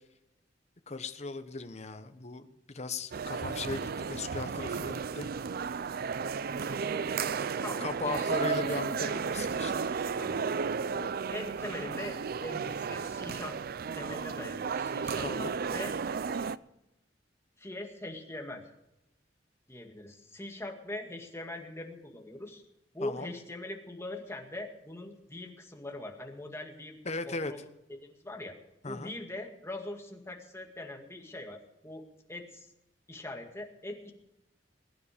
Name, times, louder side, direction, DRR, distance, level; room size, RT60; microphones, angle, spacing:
voice 1, 0.9-5.3 7.8-10.0 15.2-15.5 23.0-23.3 27.0-27.5 28.8-29.1, left 3 dB, 40° left, 9 dB, 1.1 m, -37 dB
sound 1, 3.1-16.6, right 5 dB, 55° right, 0.5 m, -33 dB
voice 2, 6.7-9.1 10.2-10.4 10.9-13.6 14.0-15.3 15.7-15.9 16.2-16.4 17.6-18.6 19.7-22.6 22.9-27.0 27.2-27.6 28.0-28.6 28.8-32.0 32.3-32.7 33.1-34.1, left 1 dB, 15° left, 3 dB, 2.1 m, -42 dB
21.0 x 9.7 x 5.1 m, 0.89 s
head